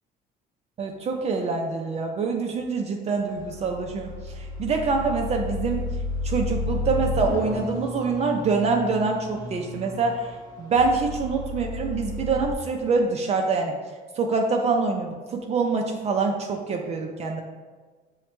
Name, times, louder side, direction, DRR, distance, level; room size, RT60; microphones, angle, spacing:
voice 1, 0.8-5.8 6.2-10.3 10.6-13.7 14.2-17.4, right 4 dB, 40° right, 2 dB, 0.4 m, -25 dB
sound 1, 3.1-12.5, left 3 dB, 25° left, 0.8 m, -32 dB
6.2 x 2.1 x 2.9 m, 1.4 s
cardioid pair, 110°, 17 cm